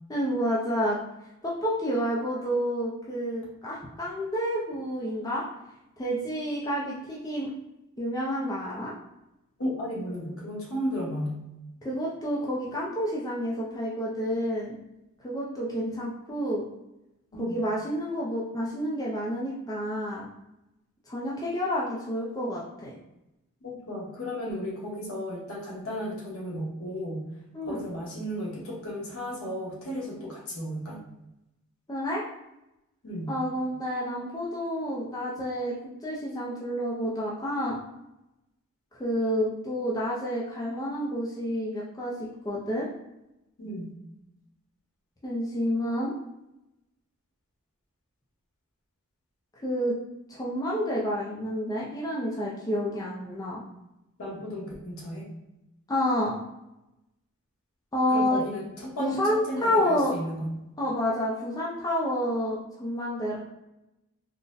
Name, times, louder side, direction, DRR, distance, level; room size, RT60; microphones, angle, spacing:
voice 1, 0.1-1.0 1.4-5.4 6.0-7.5 8.0-8.9 11.8-14.8 15.2-16.6 17.4-20.3 21.1-22.9 27.5-27.8 31.9-32.2 33.3-35.7 36.0-37.8 39.0-42.1 42.4-42.9 45.2-46.1 49.6-49.9 50.3-53.6 55.9-56.3 57.9-58.4 59.0-60.1 60.8-63.4, equal, 15° left, -5 dB, 0.4 m, -29 dB
voice 2, 9.6-11.4 15.7-16.1 17.3-17.6 23.6-27.3 27.6-31.0 33.0-33.3 43.6-43.9 54.2-55.2 58.1-60.5, equal, 70° left, -4 dB, 1.0 m, -34 dB
3.8 x 2.1 x 2.5 m, 0.90 s
head